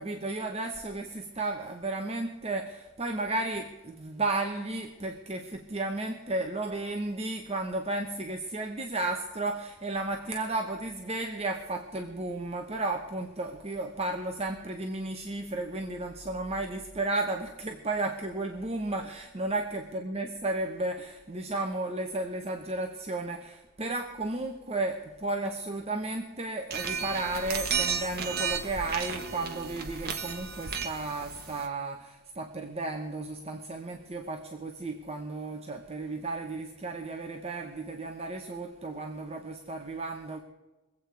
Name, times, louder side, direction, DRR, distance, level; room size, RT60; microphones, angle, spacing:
voice 1, 0.0-40.4, right 2 dB, 30° right, 3 dB, 0.9 m, -33 dB
sound 1, 26.7-31.7, right 6 dB, 45° right, 1.3 m, -33 dB
22.5 x 8.4 x 4.6 m, 1.1 s
head